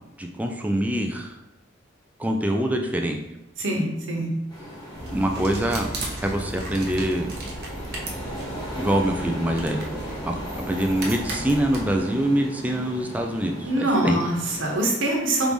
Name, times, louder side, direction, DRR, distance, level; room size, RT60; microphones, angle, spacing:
voice 1, 0.2-1.3 2.2-3.2 5.1-5.9 6.2-7.3 8.8-9.9 10.3-13.7 14.0-14.2, right 1 dB, 10° right, 3 dB, 0.3 m, -24 dB
voice 2, 3.6-4.3 13.6-15.5, right 1 dB, 85° right, -1 dB, 1.0 m, -24 dB
sound 1, 4.5-14.8, equal, 20° left, 1.0 m, -37 dB
sound 2, 4.9-12.0, right 2 dB, 55° right, 0.8 m, -35 dB
4.6 x 2.6 x 3.5 m, 0.93 s
head